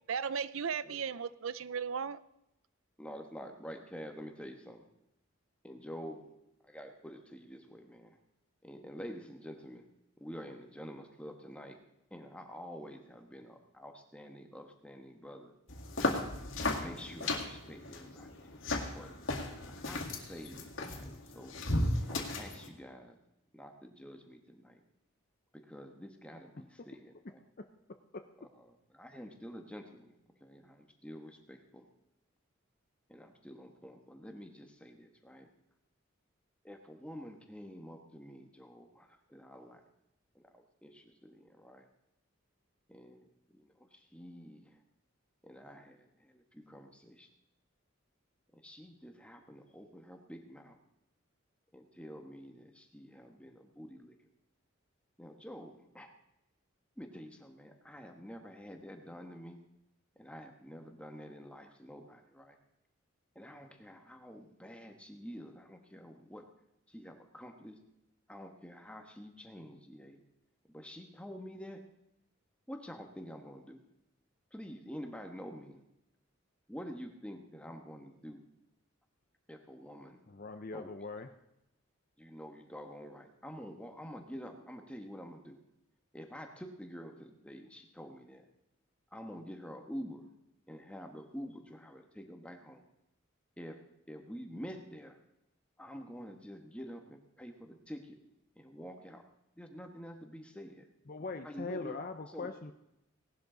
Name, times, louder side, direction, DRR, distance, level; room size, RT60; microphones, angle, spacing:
voice 1, 0.1-2.2, right 6 dB, 75° right, 17 dB, 0.6 m, -36 dB
voice 2, 3.0-4.9 5.6-6.3 6.6-8.2 8.6-9.9 10.2-11.8 12.1-15.6 16.7-18.6 18.9-19.4 19.7-21.6 22.0-23.2 23.5-24.8 25.5-27.4 28.4-30.1 30.4-31.9 33.1-35.5 36.6-39.8 40.3-41.9 42.9-44.8 45.4-47.3 48.5-50.8 51.7-54.1 55.2-56.1 57.0-59.6 60.2-62.6 63.3-66.5 66.9-67.8 68.3-70.2 70.7-71.8 72.7-73.8 74.5-75.8 76.7-78.5 79.5-80.2 80.7-80.9 82.2-85.6 86.1-88.5 89.1-90.3 90.7-92.9 93.6-93.8 94.1-95.2 95.8-98.2 98.6-99.2 99.6-100.9 101.4-102.0 102.3-102.5, equal, 5° left, 4 dB, 1.3 m, -48 dB
sound 1, 15.7-22.7, left 2 dB, 70° left, 2.1 m, -35 dB
voice 3, 80.3-81.3 101.1-102.7, left 4 dB, 45° left, 7 dB, 0.6 m, -41 dB
18.0 x 12.0 x 3.9 m, 0.85 s
head